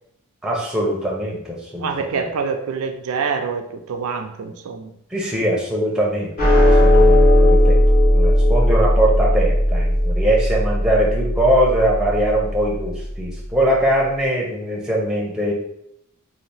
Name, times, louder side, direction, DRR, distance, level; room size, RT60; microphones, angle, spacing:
voice 1, 0.4-2.3 5.1-7.8 8.1-15.5, right 1 dB, 5° right, -3 dB, 0.5 m, -21 dB
voice 2, 1.8-4.9 6.9-7.0, right 5 dB, 75° right, 5 dB, 0.4 m, -26 dB
sound 1, 6.4-12.9, left 1 dB, 40° left, 0.9 m, -16 dB
2.7 x 2.4 x 3.2 m, 0.76 s
head